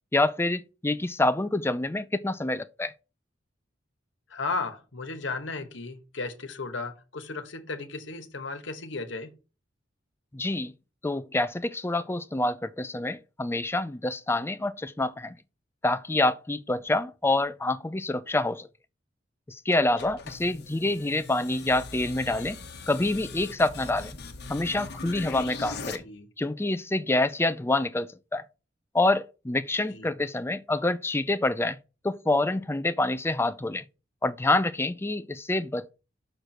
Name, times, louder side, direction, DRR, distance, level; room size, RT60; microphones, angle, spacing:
voice 1, 0.1-2.9 10.3-10.7 11.0-15.3 15.8-18.7 19.5-22.6 22.9-24.2 24.5-26.0 26.4-28.4 28.9-31.8 32.0-33.8 34.2-35.9, left 2 dB, 15° left, 0.5 m, -27 dB
voice 2, 4.3-9.3 20.0-20.1 26.0-26.3 29.9-30.1, left 3 dB, 80° left, 1.3 m, -35 dB
sound 1, 19.7-26.0, left 4 dB, 60° left, 1.1 m, -40 dB
6.5 x 4.5 x 6.4 m
head